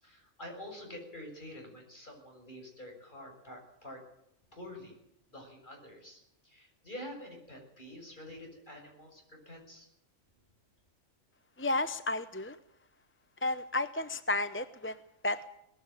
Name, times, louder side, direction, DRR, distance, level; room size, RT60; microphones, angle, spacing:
voice 1, 0.0-4.0 4.5-5.0 5.3-9.9, left 1 dB, 40° left, 1 dB, 7.3 m, -47 dB
voice 2, 11.6-12.6 13.4-15.5, left 2 dB, 15° left, 12 dB, 0.6 m, -32 dB
20.0 x 15.5 x 9.0 m, 0.78 s
omnidirectional pair, 1.3 m